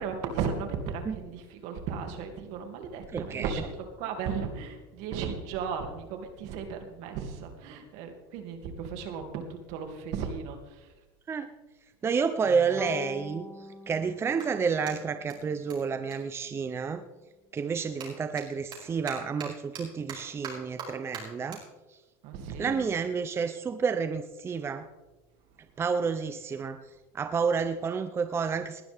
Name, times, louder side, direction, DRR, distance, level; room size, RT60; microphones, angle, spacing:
voice 1, 0.0-3.7 4.0-10.9 12.6-12.8 22.2-22.8, right 6 dB, 65° right, 5 dB, 2.6 m, -35 dB
voice 2, 3.1-3.5 11.3-11.5 12.0-13.4 13.9-17.0 17.5-21.6 22.6-24.9 25.8-26.8 27.1-28.8, right 5 dB, 20° right, 10 dB, 0.7 m, -30 dB
Bowed string instrument, 12.8-16.1, left 1 dB, ahead, 2.4 m, -44 dB
Clapping, 14.3-17.1 17.4-24.0, right 5 dB, 40° right, 5.6 m, -46 dB
19.5 x 12.5 x 3.6 m, 1.1 s
supercardioid pair, 130°, 12 cm